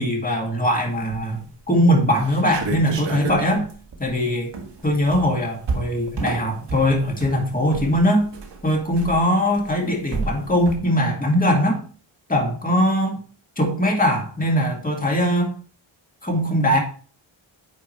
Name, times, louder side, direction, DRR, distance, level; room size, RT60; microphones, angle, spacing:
voice 1, 0.0-3.7 4.0-4.5 4.8-8.3 8.6-11.8 12.3-13.2 13.6-15.5 16.2-16.8, equal, 15° left, 0 dB, 2.0 m, -21 dB
sound 1, 1.0-1.4 1.8-1.9 2.1-10.8, right 4 dB, 60° right, 1.4 m, -32 dB
9.0 x 4.9 x 3.1 m, 0.41 s
wide cardioid pair, 110°, 48 cm